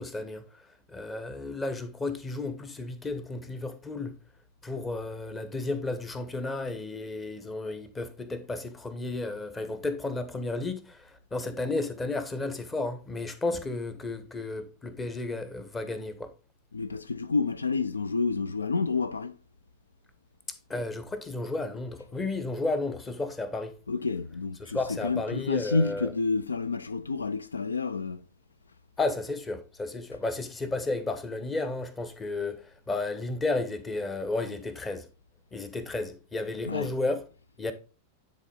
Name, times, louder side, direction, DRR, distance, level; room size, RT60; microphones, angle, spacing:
voice 1, 0.0-4.2 4.6-16.3 20.5-23.8 24.6-26.1 29.0-35.1 35.5-37.2 37.6-37.7, left 2 dB, 15° left, 1.0 m, -33 dB
voice 2, 16.7-19.3 23.9-28.2 36.7-36.9, left 4 dB, 75° left, 0.3 m, -29 dB
9.7 x 4.1 x 3.7 m
figure-of-eight pair, 90°, 0 cm